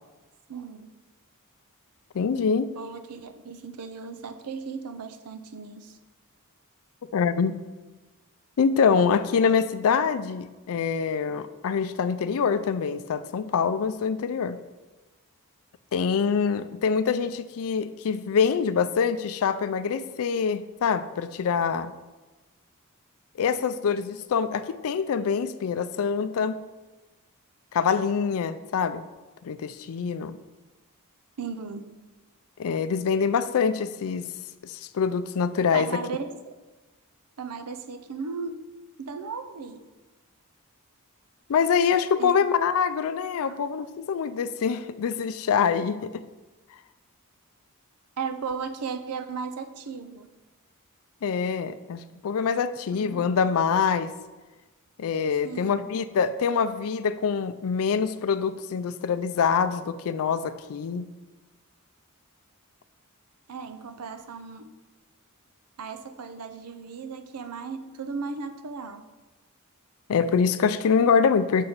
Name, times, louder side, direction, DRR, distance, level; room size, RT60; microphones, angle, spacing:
voice 1, 0.5-0.9 2.8-6.0 31.4-31.9 35.7-36.5 37.4-38.7 39.0-39.9 42.2-42.3 43.5-43.6 48.2-50.3 52.9-53.3 55.4-55.8 63.5-64.7 65.8-69.0, right 5 dB, 85° right, 9 dB, 0.6 m, -36 dB
voice 2, 2.1-2.7 7.1-7.6 8.6-14.6 15.9-21.9 23.4-26.6 27.7-29.1 29.4-30.4 32.6-34.3 34.6-35.9 41.5-46.2 51.2-54.1 55.0-61.1 70.1-71.7, left 6 dB, 65° left, 12 dB, 0.4 m, -25 dB
6.4 x 4.0 x 5.8 m, 1.2 s
head